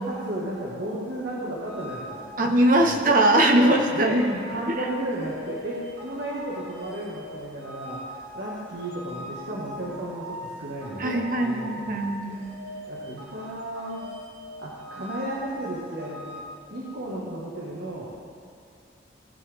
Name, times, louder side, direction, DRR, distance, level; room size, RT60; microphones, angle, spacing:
voice 1, 0.0-2.2 2.8-3.1 3.6-12.4 12.9-14.1 14.6-18.1, right 1 dB, 65° right, -6 dB, 1.6 m, -34 dB
sound 1, 1.7-16.4, equal, 90° right, 2.3 m, -41 dB
voice 2, 2.4-4.4 11.0-12.4, right 1 dB, 45° right, 2 dB, 1.0 m, -21 dB
18.0 x 7.1 x 3.6 m, 2.4 s
head